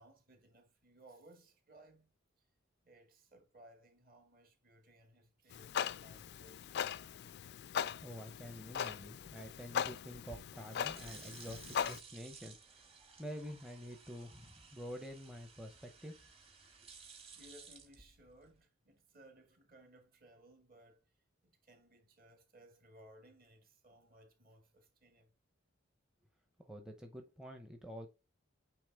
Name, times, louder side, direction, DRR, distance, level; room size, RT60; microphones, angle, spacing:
voice 1, 0.0-2.5 2.8-7.1 17.0-21.1 21.4-25.3, right 1 dB, 45° right, 1.8 m, -62 dB
Clock, 5.5-12.0, left 8 dB, 55° left, 0.3 m, -40 dB
voice 2, 8.0-16.2 26.6-28.1, equal, 5° right, 0.7 m, -48 dB
sound 1, 10.2-18.6, right 5 dB, 30° right, 1.4 m, -57 dB
8.6 x 3.3 x 3.5 m
head